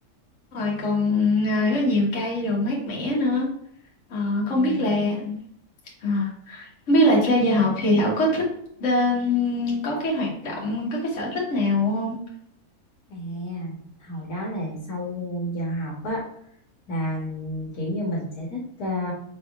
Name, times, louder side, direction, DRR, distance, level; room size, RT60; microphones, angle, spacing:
voice 1, 0.5-3.5 4.1-5.4 6.0-8.5 8.8-12.2, left 1 dB, 50° left, -3 dB, 1.5 m, -23 dB
voice 2, 4.4-5.0 13.1-16.2 16.9-19.1, left 1 dB, 75° left, -2 dB, 1.5 m, -31 dB
5.3 x 3.4 x 2.3 m, 0.70 s
omnidirectional pair, 1.6 m